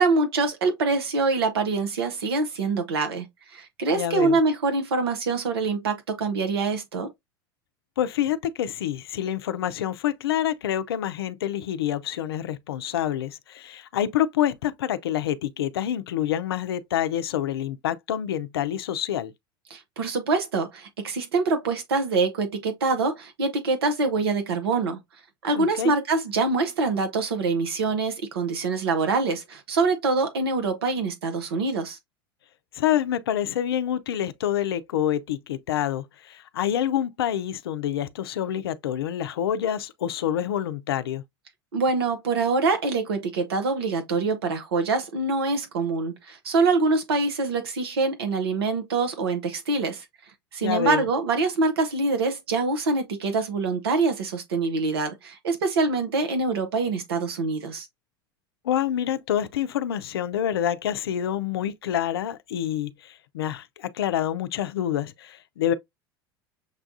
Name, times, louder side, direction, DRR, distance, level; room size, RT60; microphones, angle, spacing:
voice 1, 0.0-7.1 19.7-25.0 25.4-32.0 41.7-50.0 50.5-57.9, right 3 dB, 80° right, 0.8 m, -25 dB
voice 2, 3.9-4.4 8.0-19.3 25.5-25.9 32.7-41.2 50.6-51.1 58.6-65.7, left 10 dB, 80° left, 0.5 m, -27 dB
6.6 x 2.3 x 2.6 m
hypercardioid pair, 80°, 13 cm